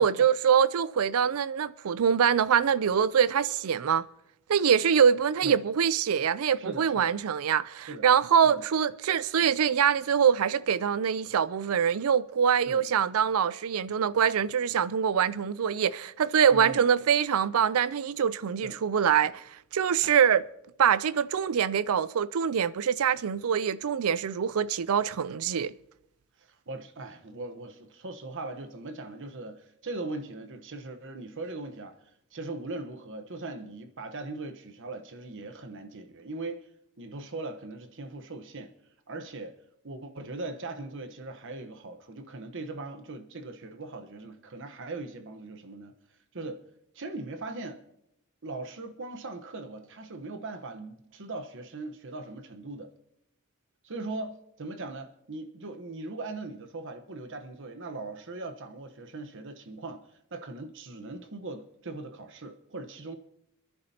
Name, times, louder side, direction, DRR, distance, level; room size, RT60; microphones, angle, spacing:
voice 1, 0.0-4.1 4.5-19.4 19.7-20.5 20.8-25.7, right 7 dB, 75° right, 0.4 m, -24 dB
voice 2, 6.5-7.1 7.9-8.1 8.5-8.6 12.7-12.8 16.5-16.8 18.6-18.7 20.0-20.3 26.4-31.9 32.3-36.7 37.0-38.7 39.1-39.5 39.8-45.9 46.3-46.6 46.9-47.8 48.4-52.9 53.8-60.0 60.3-63.2, right 2 dB, 60° right, 1.1 m, -40 dB
26.5 x 10.5 x 2.8 m
head